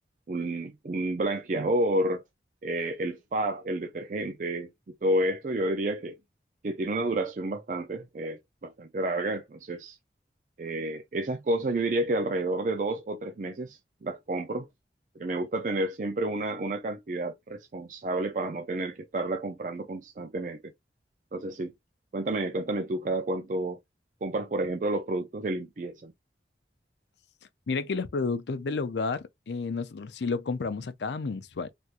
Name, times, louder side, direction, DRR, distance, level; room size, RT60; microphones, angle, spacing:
voice 1, 0.3-2.2 2.6-6.2 6.6-10.0 10.6-14.7 15.2-20.6 21.3-21.7 22.1-23.8 24.2-26.1, right 1 dB, 45° right, 0.4 m, -30 dB
voice 2, 27.7-31.7, left 4 dB, 75° left, 0.5 m, -31 dB
3.4 x 2.9 x 2.4 m
head